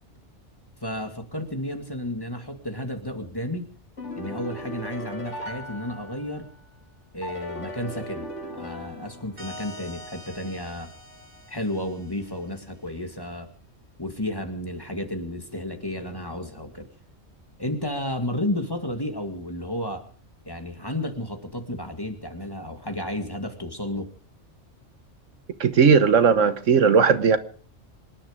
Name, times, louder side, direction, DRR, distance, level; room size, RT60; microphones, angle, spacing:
voice 1, 0.8-3.7 4.2-6.5 7.1-8.3 8.5-10.9 11.5-13.5 14.0-16.9 17.6-20.0 20.5-24.1, left 1 dB, 20° left, 2.1 m, -32 dB
sound 1, 4.0-6.6 7.2-9.7, equal, 80° left, 4.1 m, -37 dB
sound 2, 9.4-12.8, equal, 45° right, 5.3 m, -45 dB
voice 2, 25.6-27.4, right 6 dB, 85° right, 1.6 m, -17 dB
25.5 x 10.5 x 5.1 m
omnidirectional pair, 1.2 m